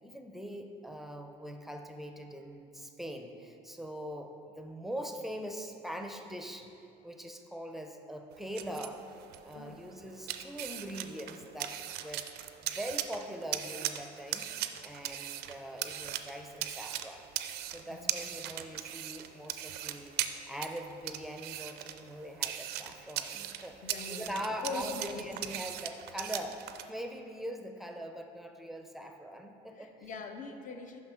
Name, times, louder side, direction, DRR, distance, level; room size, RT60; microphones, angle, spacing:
voice 1, 0.0-6.7 7.0-9.0 9.4-12.3 12.6-14.5 14.8-17.3 17.7-20.2 20.5-23.8 24.1-26.6 26.9-30.1, equal, ahead, 4 dB, 0.5 m, -42 dB
sound 1, 8.3-26.9, right 12 dB, 75° right, 0.4 m, -40 dB
voice 2, 23.8-24.3 24.6-25.3 29.8-31.0, left 4 dB, 50° left, 6 dB, 0.6 m, -42 dB
5.7 x 5.7 x 4.4 m, 2.6 s
cardioid pair, 110°, 17 cm